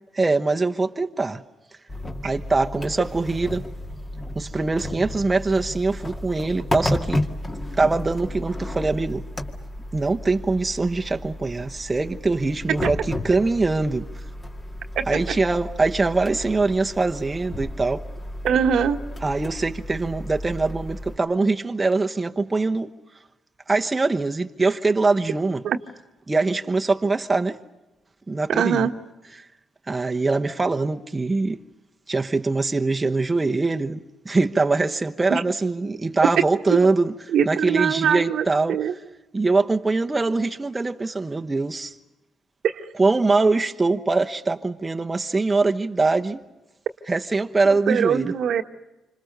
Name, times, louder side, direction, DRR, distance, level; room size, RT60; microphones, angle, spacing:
voice 1, 0.1-1.4 2.2-3.7 4.3-7.3 7.8-9.2 9.9-14.1 15.1-18.1 19.2-22.9 23.7-25.6 26.3-27.6 28.3-28.9 29.9-31.6 32.1-37.1 37.4-38.8 39.3-41.9 43.0-46.4 47.1-48.3, right 3 dB, 20° right, 1.1 m, -23 dB
sound 1, 1.9-21.2, left 1 dB, 25° left, 2.1 m, -33 dB
voice 2, 18.4-19.0 25.6-25.8 28.5-28.9 35.3-35.4 36.7-36.8 37.3-38.9 42.6-42.9 47.9-48.6, right 8 dB, 70° right, 1.3 m, -22 dB
27.5 x 26.0 x 6.7 m
cardioid pair, 90°, 0 cm